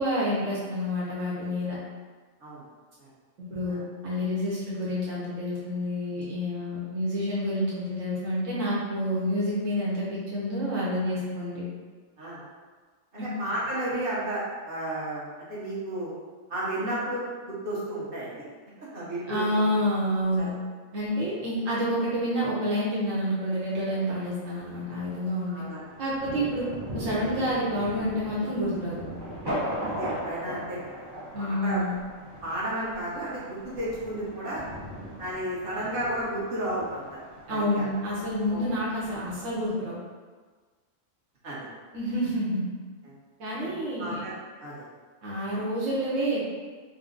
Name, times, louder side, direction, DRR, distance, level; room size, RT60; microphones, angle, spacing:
voice 1, 0.0-1.8 3.5-3.8 4.0-11.6 13.2-13.3 19.3-20.5 20.9-25.5 26.0-26.6 26.9-29.0 31.3-32.0 37.5-39.9 41.9-42.7 43.4-44.2 45.2-46.5, equal, 75° right, -7 dB, 1.2 m, -28 dB
voice 2, 13.1-16.1 16.5-18.3 18.8-19.7 20.4-20.5 25.5-25.8 29.8-31.1 31.4-31.8 32.4-34.6 35.2-37.0 37.5-37.9 38.5-38.7 41.4-41.7 43.0-43.1 43.6-44.3 44.6-44.9, right 1 dB, 45° right, -9 dB, 1.3 m, -33 dB
Thunder, 23.5-39.7, equal, 20° right, 1.0 m, -39 dB
4.1 x 2.1 x 3.8 m, 1.4 s
omnidirectional pair, 1.3 m